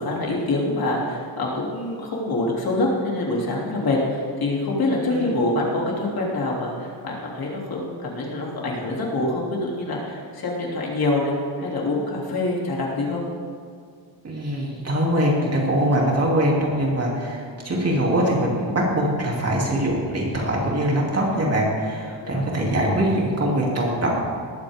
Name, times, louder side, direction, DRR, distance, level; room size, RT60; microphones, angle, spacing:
voice 1, 0.0-11.3 11.6-13.2 22.2-22.4, left 2 dB, 50° left, -3 dB, 3.1 m, -25 dB
voice 2, 14.2-24.2, right 1 dB, 35° right, -3 dB, 3.0 m, -22 dB
19.5 x 14.0 x 3.7 m, 2.1 s
wide cardioid pair, 145°, 44 cm